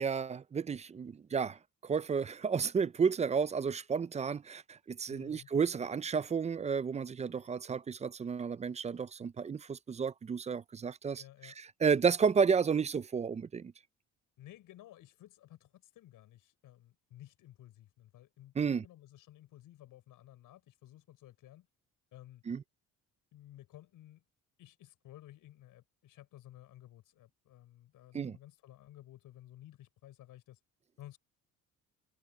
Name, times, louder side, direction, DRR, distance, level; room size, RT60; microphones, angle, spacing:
voice 1, 0.0-11.5 11.8-13.7 18.6-18.8 22.5-22.6 28.1-28.3, right 6 dB, 20° right, 0.4 m, -32 dB
voice 2, 5.1-5.5 11.2-11.6 14.4-21.7 22.1-22.4 23.3-24.2 24.6-30.6 31.0-31.2, left 13 dB, 80° left, 6.2 m, -55 dB
cardioid pair, 125°, 33 cm